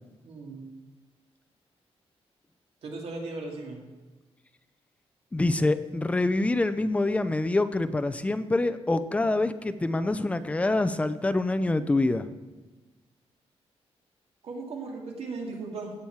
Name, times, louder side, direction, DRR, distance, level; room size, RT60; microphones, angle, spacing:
voice 1, 0.2-0.7 2.8-3.8 14.4-15.9, right 3 dB, 65° right, 0 dB, 2.3 m, -37 dB
voice 2, 5.3-12.3, left 2 dB, 10° left, 11 dB, 0.5 m, -26 dB
16.0 x 7.1 x 4.6 m, 1.2 s
wide cardioid pair, 175°, 11 cm